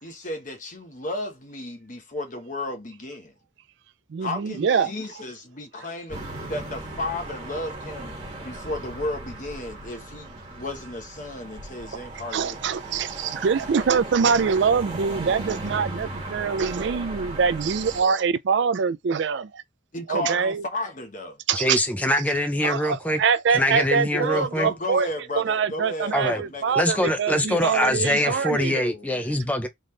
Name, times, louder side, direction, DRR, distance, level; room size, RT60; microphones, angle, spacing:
voice 1, 0.0-3.3 4.2-8.2 8.4-12.6 19.9-21.4 24.1-28.4 28.7-29.5, left 2 dB, 40° left, 1.2 m, -34 dB
voice 2, 4.1-4.9 12.3-19.6 20.1-20.6 21.5-21.8 22.6-25.1 25.4-28.8, right 6 dB, 65° right, 0.4 m, -24 dB
sound 1, 6.1-18.0, right 2 dB, 25° right, 1.7 m, -37 dB
voice 3, 21.5-23.2 23.5-24.7 26.1-26.4 26.7-29.7, left 1 dB, 10° left, 0.6 m, -24 dB
3.9 x 3.5 x 3.2 m
head